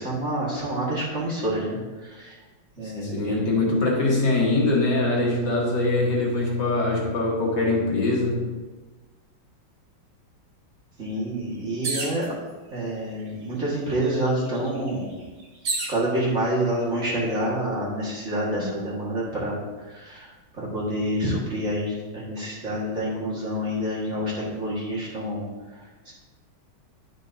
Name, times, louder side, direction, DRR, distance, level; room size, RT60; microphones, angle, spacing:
voice 1, 0.0-2.4 2.8-3.5 11.0-12.2 12.7-15.1 15.9-25.4 25.7-26.1, right 1 dB, 35° right, -7 dB, 2.0 m, -28 dB
voice 2, 3.0-8.5 18.6-18.8, left 2 dB, 60° left, -3 dB, 2.0 m, -23 dB
sound 1, 11.8-12.3 13.2-13.3 13.6-16.0 16.8-17.3, right 3 dB, 55° right, 1.7 m, -31 dB
10.5 x 6.2 x 2.7 m, 1.3 s
omnidirectional pair, 2.2 m